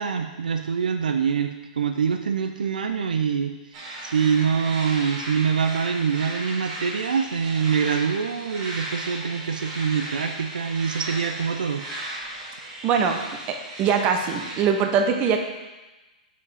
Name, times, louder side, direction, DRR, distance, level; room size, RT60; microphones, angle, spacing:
voice 1, 0.0-11.8, right 6 dB, 85° right, 6 dB, 0.5 m, -25 dB
sound 1, 3.7-14.7, right 1 dB, 45° right, 2.2 m, -36 dB
voice 2, 12.8-13.2 13.5-15.4, right 6 dB, 30° right, 4 dB, 0.8 m, -22 dB
5.0 x 4.8 x 4.9 m, 1.1 s
hypercardioid pair, 125°, 4 cm